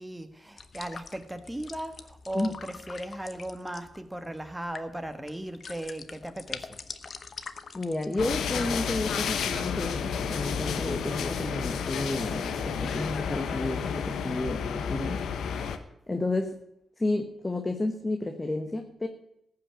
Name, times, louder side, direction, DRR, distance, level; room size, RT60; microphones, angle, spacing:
voice 1, 0.0-6.7, right 1 dB, 10° right, 8 dB, 1.6 m, -37 dB
sound 1, 0.6-8.7, left 5 dB, 50° left, 0.9 m, -45 dB
voice 2, 7.7-15.2 16.1-16.6 17.0-19.1, left 2 dB, 20° left, 5 dB, 1.3 m, -31 dB
sound 2, 8.2-15.8, left 7 dB, 80° left, 1.0 m, -31 dB
14.5 x 5.8 x 8.9 m, 0.80 s
cardioid pair, 60°, 0 cm